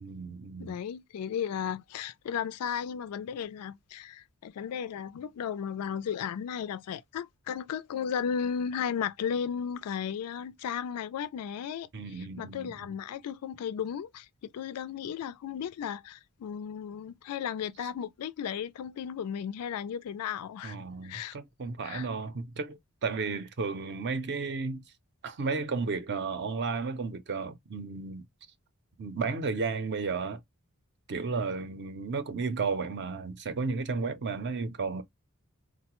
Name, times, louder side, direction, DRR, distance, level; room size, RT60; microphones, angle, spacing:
voice 1, 0.0-0.8 11.9-12.9 20.6-24.8 25.2-28.2 29.0-30.4 31.1-35.0, right 4 dB, 50° right, 0.5 m, -33 dB
voice 2, 0.6-20.8 21.0-21.4 21.8-22.1, left 8 dB, 85° left, 0.3 m, -35 dB
3.8 x 2.1 x 2.9 m
head